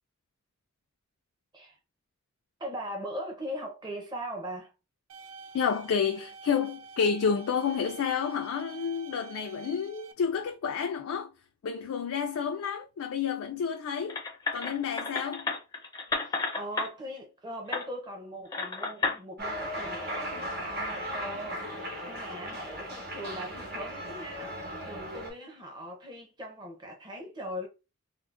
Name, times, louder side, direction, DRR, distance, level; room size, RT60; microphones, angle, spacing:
voice 1, 2.6-4.7 16.2-21.8 22.1-27.7, equal, 20° right, 0.7 m, -40 dB
sound 1, 5.1-10.1, right 5 dB, 85° right, 0.4 m, -48 dB
voice 2, 5.5-11.3 11.6-14.2 14.5-15.5, left 6 dB, 80° left, 0.4 m, -30 dB
sound 2, 14.1-16.9 17.7-17.9 18.5-19.2, left 4 dB, 15° left, 0.4 m, -32 dB
Cheering, 19.4-25.3, equal, 45° right, 1.0 m, -37 dB
3.6 x 2.1 x 2.4 m
head